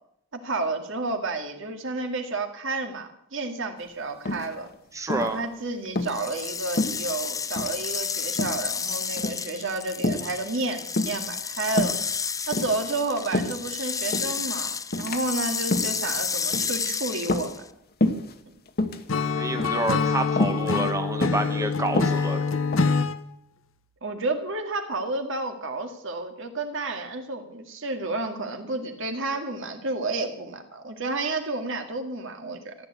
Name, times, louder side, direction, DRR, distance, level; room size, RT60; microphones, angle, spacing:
voice 1, 0.3-4.7 5.1-12.0 12.5-17.7 18.5-18.6 24.0-32.7, right 3 dB, 70° right, 5 dB, 2.1 m, -31 dB
sound 1, 4.3-4.7 5.1-5.4 5.9-6.2 6.8-7.3 7.6-7.8 8.4-8.7 9.1-9.4 10.0-10.3 11.0-11.3 11.7-12.0 12.5-13.7 14.1-14.4 14.9-15.2 15.6-16.0 16.5-16.8 17.2-17.7 18.0-18.3 18.7-19.0 19.6-19.9 20.4-20.6 21.2-21.5 21.9-23.0, left 2 dB, 50° left, 1.2 m, -27 dB
voice 2, 4.9-5.4 19.3-22.4, right 2 dB, 15° right, 6 dB, 1.1 m, -28 dB
sound 2, 6.0-17.7, left 6 dB, 15° left, 0.5 m, -31 dB
Acoustic guitar / Strum, 19.1-23.2, left 5 dB, 75° left, 0.9 m, -25 dB
14.5 x 10.5 x 8.2 m, 0.75 s
head